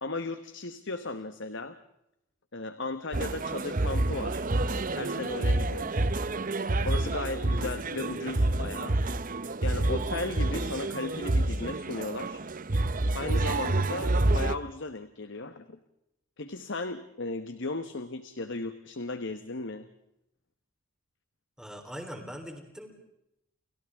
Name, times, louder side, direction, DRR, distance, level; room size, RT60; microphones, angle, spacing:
voice 1, 0.0-1.8 2.5-4.5 4.9-6.1 6.8-9.0 9.6-12.4 13.1-15.8 16.4-19.9, left 2 dB, 55° left, 10 dB, 1.2 m, -36 dB
sound 1, 3.1-14.6, right 2 dB, 40° right, 0.8 m, -28 dB
voice 2, 21.6-22.9, equal, 5° right, 3 dB, 3.7 m, -41 dB
30.0 x 29.5 x 3.6 m, 0.83 s
head